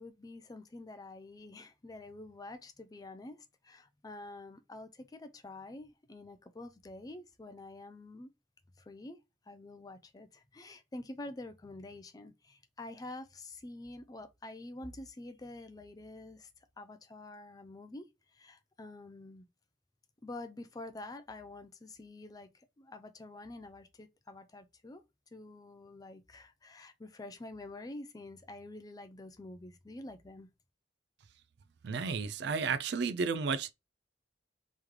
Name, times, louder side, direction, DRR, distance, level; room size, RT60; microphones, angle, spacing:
voice 1, 0.0-8.3 8.8-9.2 9.5-16.5 16.8-18.1 18.3-19.5 20.2-25.0 25.3-30.5, left 2 dB, 20° left, 0.4 m, -47 dB
voice 2, 31.8-33.7, right 5 dB, 65° right, 0.4 m, -32 dB
3.1 x 3.1 x 3.5 m
head